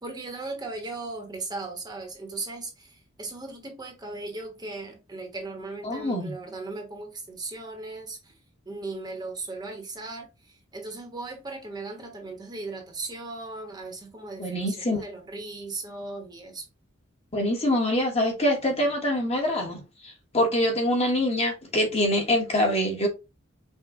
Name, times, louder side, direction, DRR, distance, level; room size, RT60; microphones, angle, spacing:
voice 1, 0.0-8.3 8.7-16.7, right 3 dB, 20° right, 1.0 m, -37 dB
voice 2, 5.8-6.3 14.4-15.0 17.3-23.1, left 1 dB, 30° left, 1.3 m, -25 dB
5.5 x 2.3 x 3.5 m
head